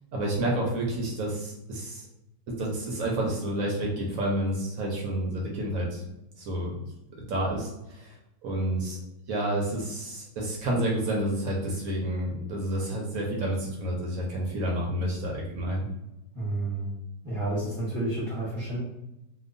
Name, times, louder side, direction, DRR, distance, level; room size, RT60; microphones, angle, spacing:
voice 1, 0.1-2.1 2.5-6.0 6.4-6.8 7.2-8.1 8.4-9.0 9.3-15.9, right 1 dB, 65° right, -2 dB, 0.9 m, -29 dB
voice 2, 16.3-16.9 17.2-18.8, right 2 dB, 25° right, -8 dB, 0.6 m, -30 dB
2.9 x 2.3 x 2.5 m, 0.92 s
omnidirectional pair, 1.9 m